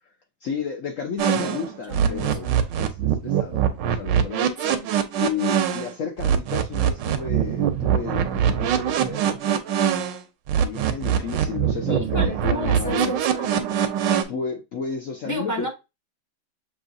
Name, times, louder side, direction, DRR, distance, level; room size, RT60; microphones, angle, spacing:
voice 1, 0.4-2.5 2.8-4.5 5.2-10.0 10.5-13.1 14.3-15.7, left 6 dB, 65° left, 0.8 m, -32 dB
sound 1, 1.2-5.9 6.2-10.2 10.5-14.2, right 9 dB, 75° right, 1.2 m, -23 dB
voice 2, 1.9-2.7 4.6-4.9 11.9-13.7 15.2-15.7, equal, 25° left, 0.4 m, -32 dB
6.3 x 3.0 x 2.6 m
omnidirectional pair, 2.1 m